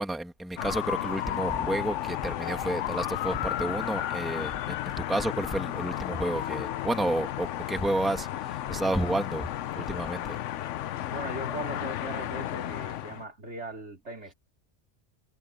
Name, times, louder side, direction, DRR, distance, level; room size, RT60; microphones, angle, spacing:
voice 1, 0.0-9.5 9.8-10.4, right 1 dB, ahead, 1.5 m, -31 dB
High Speed Police Chase on a Noisy Freeway, 0.6-13.2, left 12 dB, 85° left, 1.0 m, -33 dB
voice 2, 11.1-14.3, right 1 dB, 70° right, 4.4 m, -38 dB
omnidirectional pair, 1.2 m